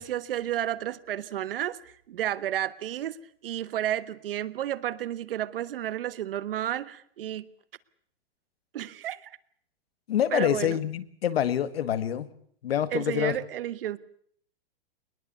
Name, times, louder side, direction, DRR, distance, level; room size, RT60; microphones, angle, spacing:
voice 1, 0.0-3.2 3.4-7.5 8.7-9.3 10.3-10.8 12.9-14.0, right 12 dB, 70° right, 15 dB, 1.4 m, -32 dB
voice 2, 10.1-12.3 12.6-13.4, left 10 dB, 90° left, 13 dB, 1.9 m, -26 dB
21.5 x 20.5 x 8.2 m, 0.64 s
supercardioid pair, 175°, 30 cm